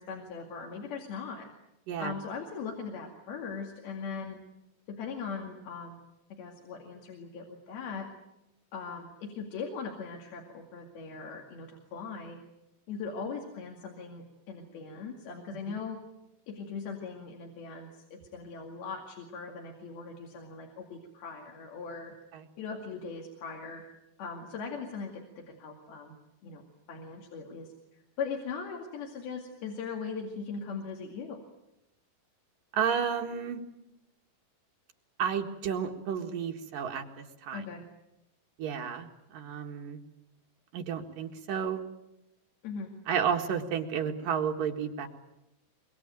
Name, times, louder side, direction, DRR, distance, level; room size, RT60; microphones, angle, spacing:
voice 1, 0.0-1.5 2.0-4.4 4.9-6.0 6.4-8.1 8.7-12.4 12.9-16.0 16.5-22.1 22.6-23.8 24.2-26.2 26.4-26.6 26.9-31.4 37.5-37.8 42.6-42.9, left 5 dB, 85° left, 1 dB, 4.3 m, -40 dB
voice 2, 32.7-33.6 35.2-37.0 37.4-37.6 38.6-39.1 39.3-40.0 40.7-41.8 43.1-45.1, right 7 dB, 65° right, 3 dB, 3.3 m, -31 dB
24.5 x 23.5 x 9.0 m, 0.89 s
omnidirectional pair, 4.3 m